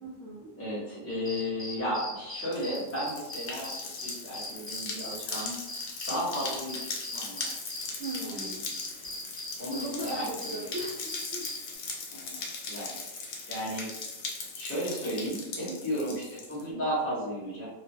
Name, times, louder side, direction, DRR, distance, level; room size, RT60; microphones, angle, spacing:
voice 1, 0.0-0.5 6.3-6.4 8.0-8.7 9.7-11.5 12.7-13.0 15.7-15.8, right 1 dB, 70° right, -5 dB, 0.7 m, -39 dB
voice 2, 0.6-5.6 6.1-7.5 8.2-8.5 9.6-10.7 12.1-12.9 13.5-13.9 14.5-17.7, equal, 15° left, -10 dB, 0.5 m, -34 dB
sound 1, 1.1-11.8, left 2 dB, 40° left, 1.1 m, -40 dB
sound 2, 2.4-16.6, left 4 dB, 85° left, 1.3 m, -39 dB
3.0 x 2.1 x 2.6 m, 0.99 s
omnidirectional pair, 1.9 m